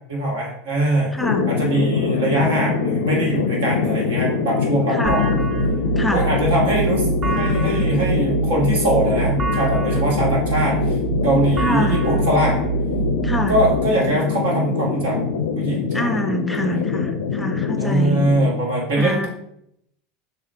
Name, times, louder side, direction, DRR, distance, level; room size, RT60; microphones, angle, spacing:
voice 1, 0.1-1.2 1.5-5.3 6.1-10.9 11.2-12.7 13.5-15.2 15.5-16.1 16.6-16.8 17.8-19.3, right 1 dB, 75° right, -2 dB, 1.4 m, -22 dB
voice 2, 1.1-1.5 4.9-5.2 6.0-6.2 11.6-12.0 13.2-13.5 15.9-18.2 19.0-19.3, equal, 10° left, 6 dB, 0.5 m, -25 dB
sound 1, 1.2-18.5, left 5 dB, 80° left, 0.4 m, -23 dB
sound 2, 5.0-13.7, right 6 dB, 40° right, 1.0 m, -25 dB
7.0 x 2.4 x 2.5 m, 0.75 s
hypercardioid pair, 85°, 0 cm